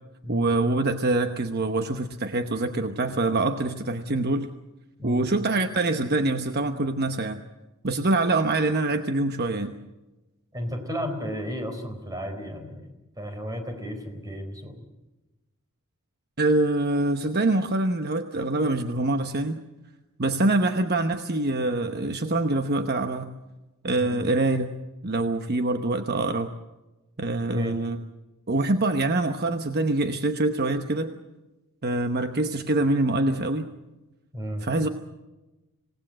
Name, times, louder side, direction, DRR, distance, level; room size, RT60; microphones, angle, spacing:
voice 1, 0.3-4.5 5.0-7.4 7.8-9.7 16.4-19.6 20.2-23.3 23.8-24.7 25.0-26.5 27.2-28.0 28.5-31.1 31.8-33.7 34.6-34.9, right 2 dB, 50° right, 7 dB, 1.0 m, -25 dB
voice 2, 10.5-14.9 24.0-24.2 27.5-27.8 34.3-34.6, equal, 15° right, 5 dB, 4.1 m, -33 dB
27.0 x 18.5 x 7.6 m, 1.1 s
head